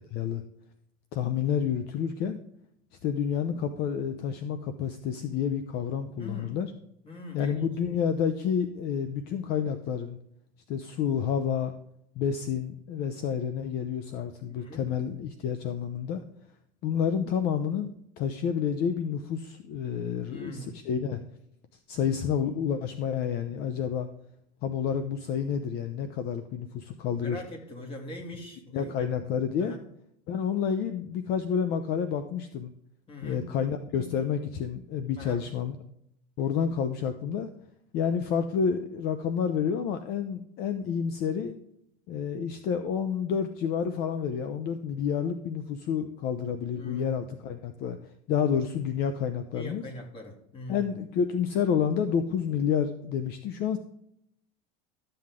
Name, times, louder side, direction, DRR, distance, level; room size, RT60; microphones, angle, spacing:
voice 1, 0.1-0.4 1.1-2.4 3.0-6.7 7.3-10.2 10.7-11.7 12.2-16.2 16.8-21.3 21.9-24.1 24.6-27.4 28.7-29.8 30.3-32.7 33.2-35.8 36.4-37.5 37.9-41.5 42.1-48.0 48.3-49.8 50.7-53.8, left 7 dB, 55° left, 10 dB, 0.8 m, -29 dB
voice 2, 6.2-6.6 7.0-7.7 14.5-14.9 20.3-20.8 27.1-29.1 29.6-29.8 33.1-33.5 35.2-35.4 46.7-47.3 49.5-50.9, left 1 dB, 25° left, 2 dB, 2.9 m, -42 dB
13.0 x 7.8 x 3.7 m, 0.74 s
supercardioid pair, 125°, 20 cm